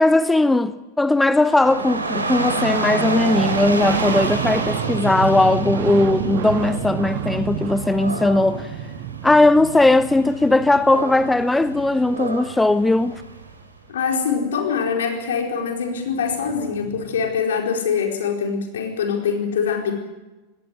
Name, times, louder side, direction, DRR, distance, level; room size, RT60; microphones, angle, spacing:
voice 1, 0.0-8.7 9.2-13.2, left 2 dB, 5° left, 0.7 m, -18 dB
Dog / Rain, 1.4-13.5, right 3 dB, 90° right, 3.3 m, -29 dB
sound 1, 2.8-13.2 15.2-15.3 15.5-17.3, right 10 dB, 55° right, 1.7 m, -31 dB
Wind instrument woodwind instrument, 4.4-8.6, left 3 dB, 35° right, 6.2 m, -38 dB
voice 2, 13.9-19.9, left 6 dB, 70° left, 4.6 m, -23 dB
19.5 x 17.5 x 9.8 m
figure-of-eight pair, 90°, 0 cm